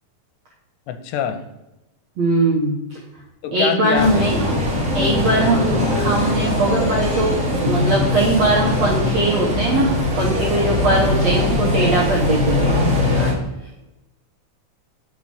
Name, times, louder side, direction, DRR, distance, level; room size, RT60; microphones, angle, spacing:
voice 1, 0.9-1.4 3.4-4.2, left 9 dB, 90° left, 8 dB, 2.7 m, -24 dB
voice 2, 2.2-2.8 3.5-4.4 4.9-9.9 10.2-12.9 13.1-13.3, right 2 dB, 70° right, -5 dB, 1.6 m, -20 dB
sound 1, 3.9-13.3, left 1 dB, 50° right, 0.9 m, -21 dB
6.2 x 4.1 x 6.3 m, 0.98 s
omnidirectional pair, 4.8 m